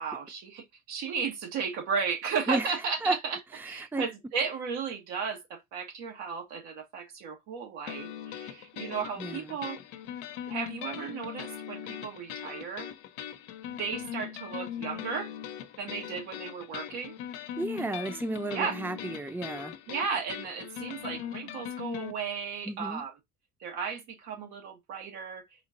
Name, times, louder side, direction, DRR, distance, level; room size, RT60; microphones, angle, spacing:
voice 1, 0.0-3.4 3.6-9.8 10.5-12.9 13.8-15.3 15.8-17.1 18.5-18.8 19.9-23.1 23.6-25.5, right 5 dB, 85° right, 1.6 m, -34 dB
voice 2, 2.5-3.2 3.5-4.1 9.2-9.6 17.6-19.8 22.6-23.0, right 2 dB, 5° right, 0.6 m, -33 dB
sound 1, 7.9-22.1, left 10 dB, 85° left, 0.7 m, -40 dB
4.2 x 2.8 x 3.8 m
supercardioid pair, 65°, 39 cm